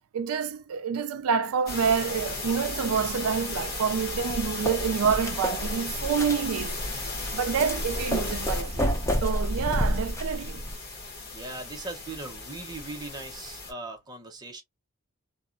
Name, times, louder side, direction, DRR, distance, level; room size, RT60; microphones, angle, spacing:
voice 1, 0.1-6.8 7.3-8.9 9.2-10.6, right 6 dB, 85° right, 0.4 m, -27 dB
sound 1, 1.7-13.7, left 3 dB, 45° left, 1.1 m, -36 dB
sound 2, 4.1-10.8, equal, 15° left, 0.5 m, -30 dB
voice 2, 11.3-14.6, right 2 dB, 20° right, 0.7 m, -39 dB
2.9 x 2.0 x 2.5 m
head